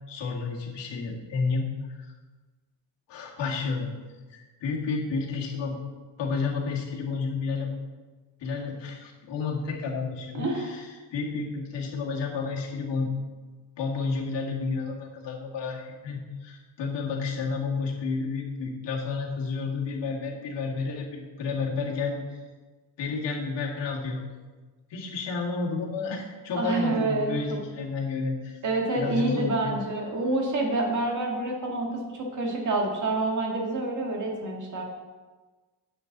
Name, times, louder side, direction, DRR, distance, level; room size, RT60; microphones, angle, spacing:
voice 1, 0.1-1.7 2.0-2.1 3.1-3.9 4.3-5.8 6.2-7.7 8.4-13.1 13.8-22.2 23.0-24.3 24.9-28.6 28.9-29.8, left 4 dB, 75° left, -2 dB, 2.0 m, -31 dB
voice 2, 10.3-10.7 26.6-27.6 28.6-34.8, right 2 dB, 45° right, 0 dB, 1.8 m, -27 dB
9.7 x 7.4 x 4.0 m, 1.3 s
cardioid pair, 155°, 43 cm